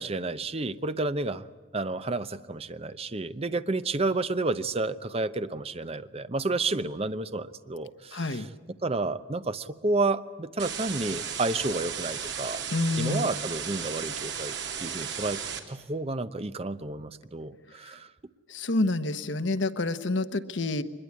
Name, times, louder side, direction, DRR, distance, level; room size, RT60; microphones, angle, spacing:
voice 1, 0.0-1.5 1.7-8.4 8.8-12.6 13.0-14.5 14.8-15.4 15.7-18.1, right 2 dB, 30° right, 11 dB, 0.8 m, -30 dB
voice 2, 8.1-8.5 12.7-13.3 18.5-20.8, left 2 dB, 80° left, 11 dB, 1.1 m, -28 dB
sound 1, 10.6-15.6, right 7 dB, 65° right, 2.6 m, -35 dB
24.0 x 21.5 x 8.5 m, 1.4 s
head